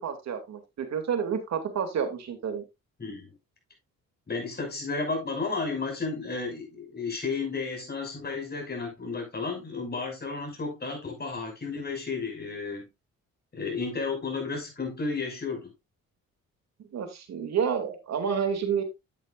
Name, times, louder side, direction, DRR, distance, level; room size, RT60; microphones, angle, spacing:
voice 1, 0.0-2.6 16.9-18.8, right 7 dB, 60° right, 2.5 m, -29 dB
voice 2, 3.0-3.3 4.3-12.9 13.5-15.7, left 4 dB, 30° left, 6.1 m, -33 dB
11.0 x 8.4 x 2.5 m
cardioid pair, 90°, 30 cm